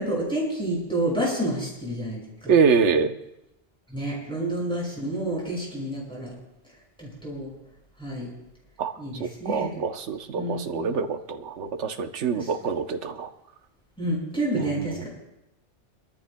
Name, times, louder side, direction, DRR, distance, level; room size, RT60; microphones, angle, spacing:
voice 1, 0.0-2.5 3.9-6.3 7.0-7.5 8.0-8.3 9.0-9.1 9.4-9.7 10.3-10.9 12.3-12.5 14.0-15.1, right 1 dB, 5° left, -5 dB, 6.2 m, -29 dB
voice 2, 2.5-3.2 8.8-8.9 9.2-13.3 14.5-15.1, right 5 dB, 75° right, 7 dB, 1.2 m, -25 dB
24.5 x 13.5 x 2.2 m, 0.88 s
omnidirectional pair, 1.2 m